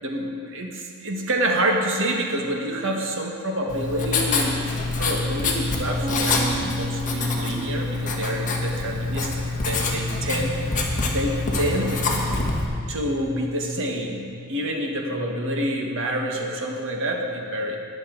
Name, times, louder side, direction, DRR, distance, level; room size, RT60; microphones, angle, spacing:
voice 1, 0.0-9.3 9.6-10.6 11.1-12.0 12.9-17.8, right 1 dB, 60° right, 1 dB, 1.5 m, -27 dB
Writing, 3.7-12.6, left 3 dB, 35° left, 1.3 m, -26 dB
sound 1, 6.0-9.9, right 3 dB, 25° right, 2.1 m, -36 dB
20.0 x 7.0 x 4.0 m, 2.4 s
head